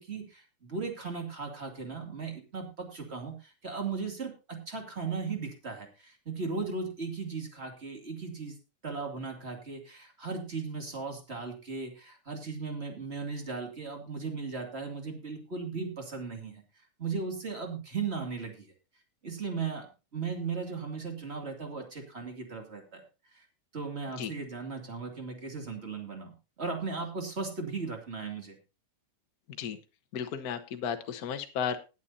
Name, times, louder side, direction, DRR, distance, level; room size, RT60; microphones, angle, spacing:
voice 1, 0.0-8.5 8.8-16.5 17.0-18.7 19.2-19.9 20.1-23.0 23.3-23.5 23.7-28.6, right 4 dB, 25° right, 3 dB, 2.4 m, -37 dB
voice 2, 30.1-31.8, left 7 dB, 50° left, 7 dB, 1.1 m, -34 dB
20.0 x 8.4 x 2.7 m, 0.29 s
omnidirectional pair, 3.3 m